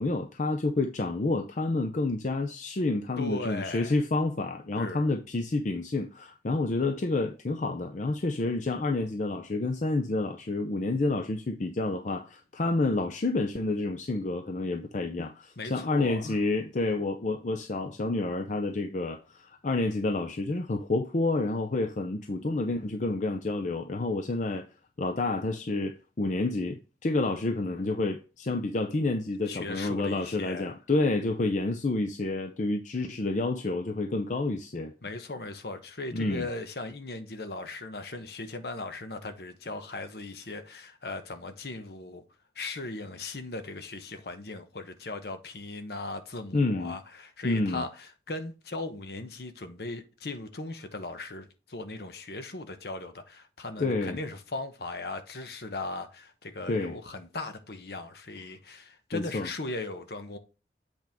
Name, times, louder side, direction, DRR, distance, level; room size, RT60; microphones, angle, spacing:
voice 1, 0.0-24.7 25.0-34.9 36.1-36.5 46.5-47.0 47.4-47.8 53.8-54.2 56.7-57.0 59.1-59.5, left 2 dB, 45° left, 0.6 m, -29 dB
voice 2, 3.2-4.0 4.8-5.1 15.6-16.4 29.5-30.7 35.0-42.2 42.5-47.9 48.3-60.4, left 2 dB, 60° left, 1.0 m, -38 dB
8.1 x 4.5 x 3.5 m
head